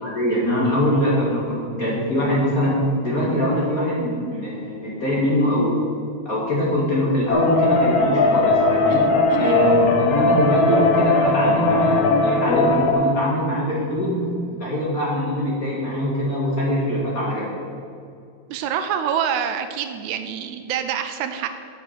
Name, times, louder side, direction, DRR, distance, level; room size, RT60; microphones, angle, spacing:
voice 1, 0.0-2.8 3.0-5.8 6.3-9.0 9.4-14.2 14.5-17.5, equal, 35° left, -6 dB, 1.8 m, -22 dB
sound 1, 7.3-12.9, left 3 dB, 65° left, 1.8 m, -18 dB
voice 2, 8.9-9.6 18.5-21.5, right 8 dB, 80° right, 8 dB, 1.9 m, -26 dB
7.2 x 6.9 x 6.5 m, 2.5 s
omnidirectional pair, 3.4 m